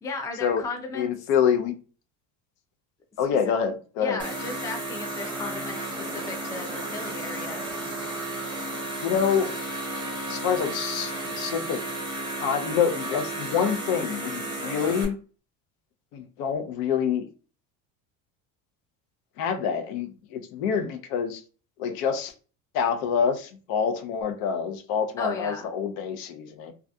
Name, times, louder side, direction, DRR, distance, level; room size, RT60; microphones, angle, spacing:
voice 1, 0.0-1.1 4.0-7.9 25.2-25.7, left 3 dB, 10° left, 0.3 m, -35 dB
voice 2, 0.9-1.7 3.2-4.2 9.0-9.5 10.3-11.8 12.4-15.1 16.1-17.2 19.4-21.4 21.8-22.3 22.7-26.7, left 7 dB, 75° left, 0.6 m, -26 dB
sound 1, 4.2-15.0, right 1 dB, 10° right, 0.7 m, -33 dB
2.4 x 2.2 x 2.6 m
cardioid pair, 125°, 38 cm